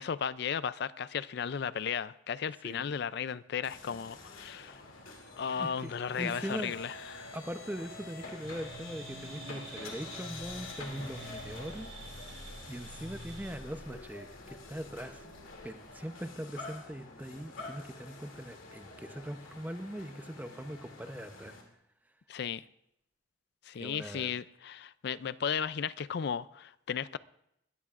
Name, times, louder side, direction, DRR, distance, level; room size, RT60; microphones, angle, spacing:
voice 1, 0.0-4.8 5.4-7.3 22.3-22.6 23.7-27.2, left 7 dB, 55° left, 0.4 m, -35 dB
voice 2, 2.6-3.0 5.5-6.8 7.3-15.3 15.6-21.6 23.7-24.4, equal, 10° right, 0.7 m, -41 dB
sound 1, 3.6-21.6, left 2 dB, 90° left, 2.7 m, -47 dB
sound 2, 8.4-13.5, right 2 dB, 65° right, 5.1 m, -48 dB
21.0 x 14.0 x 2.5 m
head